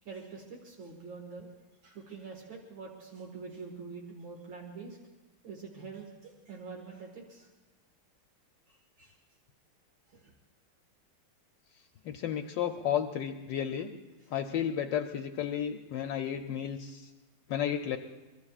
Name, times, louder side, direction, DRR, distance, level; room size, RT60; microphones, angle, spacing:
voice 1, 0.0-1.5 1.8-5.0 5.4-7.5 8.7-9.2 10.1-10.4 14.2-14.3, right 4 dB, 70° right, 0 dB, 2.4 m, -45 dB
voice 2, 12.0-13.9 14.3-17.1 17.5-18.0, left 9 dB, 70° left, 6 dB, 1.2 m, -32 dB
23.5 x 22.5 x 2.4 m, 1.2 s
omnidirectional pair, 2.2 m